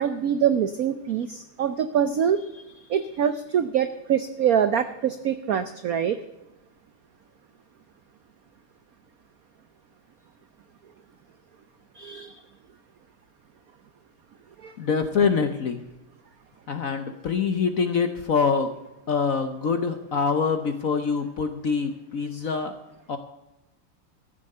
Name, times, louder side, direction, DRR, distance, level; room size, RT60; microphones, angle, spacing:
voice 1, 0.0-2.6 2.9-6.2 12.0-12.4 14.6-14.7, right 8 dB, 85° right, 11 dB, 0.7 m, -24 dB
voice 2, 14.8-15.8 16.7-18.7 19.1-22.7 23.1-23.2, left 5 dB, 60° left, 8 dB, 0.9 m, -25 dB
14.0 x 7.8 x 6.6 m, 0.96 s
omnidirectional pair, 2.4 m